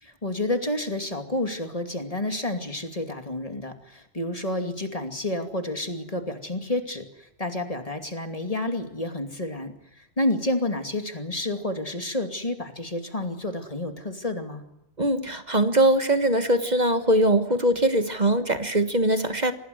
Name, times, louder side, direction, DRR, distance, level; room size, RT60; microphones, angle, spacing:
voice 1, 0.0-14.6, left 1 dB, 35° left, 6 dB, 2.7 m, -30 dB
voice 2, 15.0-19.5, right 1 dB, 45° right, 9 dB, 1.6 m, -22 dB
26.0 x 20.0 x 8.0 m, 0.85 s
omnidirectional pair, 1.1 m